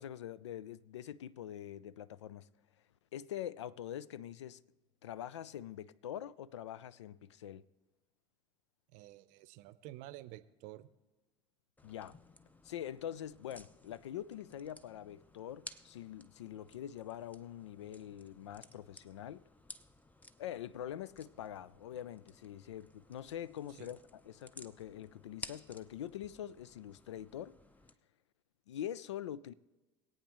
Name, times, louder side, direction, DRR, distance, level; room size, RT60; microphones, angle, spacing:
voice 1, 0.0-2.5 3.1-4.6 5.0-7.7 11.8-12.2 12.6-19.4 20.4-27.6 28.7-29.5, left 11 dB, 80° left, 0.4 m, -44 dB
voice 2, 8.9-10.9 23.8-23.9, right 16 dB, 60° right, 0.7 m, -50 dB
Putting On and Taking Off a Watch, 11.8-27.9, left 1 dB, 10° left, 0.7 m, -56 dB
22.0 x 8.8 x 3.0 m
figure-of-eight pair, 65°, 15 cm